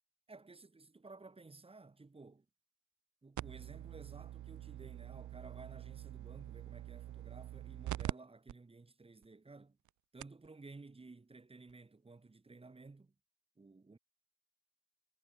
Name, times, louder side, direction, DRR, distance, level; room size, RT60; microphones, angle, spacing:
voice 1, 0.3-2.5 3.2-9.8 10.1-13.1 13.6-14.0, right 3 dB, 20° right, 1.7 m, -55 dB
sound 1, 3.4-8.1 8.5-8.6 9.2-9.3 9.9-10.0 10.2-10.5 11.7-11.8, right 13 dB, 70° right, 1.2 m, -44 dB
cardioid pair, 90°, 30 cm